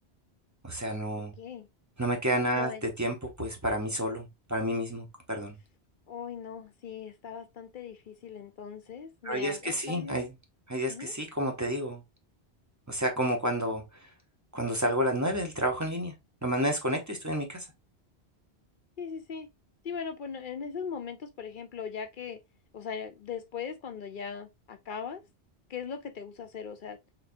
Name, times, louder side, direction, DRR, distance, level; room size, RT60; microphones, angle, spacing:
voice 1, 0.6-1.3 2.0-5.6 9.2-10.3 10.7-12.0 12.9-13.8 14.5-16.1 16.4-17.7, equal, 20° right, 0.8 m, -30 dB
voice 2, 1.4-1.7 2.5-2.8 6.1-10.3 10.9-11.1 19.0-19.5 19.8-22.4 22.7-25.2 25.7-27.0, left 6 dB, 55° left, 0.7 m, -39 dB
4.0 x 3.5 x 2.5 m
omnidirectional pair, 1.1 m